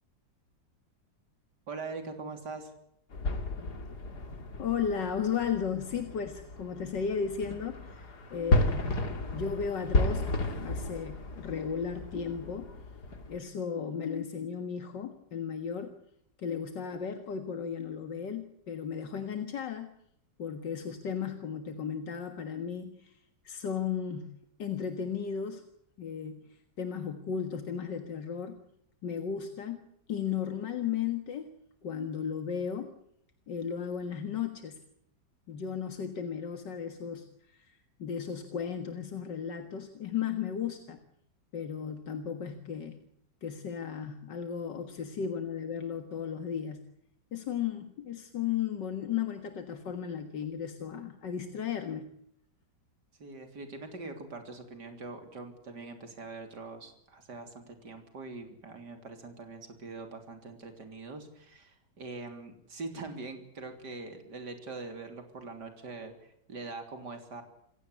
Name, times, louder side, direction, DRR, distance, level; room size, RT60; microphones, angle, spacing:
voice 1, 1.7-2.7 45.2-45.3 53.2-67.4, right 3 dB, 70° right, 6 dB, 4.0 m, -43 dB
sound 1, 3.1-13.4, left 2 dB, 65° left, 3.2 m, -33 dB
voice 2, 4.6-8.9 9.3-10.3 10.6-12.7 13.3-16.0 16.4-19.9 20.4-23.2 23.4-24.3 24.6-25.6 26.0-28.6 29.0-29.8 30.1-31.5 31.8-32.9 33.5-34.8 35.5-41.0 41.5-43.0 43.4-46.8 47.3-52.1, left 7 dB, 85° left, 8 dB, 2.3 m, -35 dB
28.0 x 16.0 x 8.1 m, 0.73 s
omnidirectional pair, 1.9 m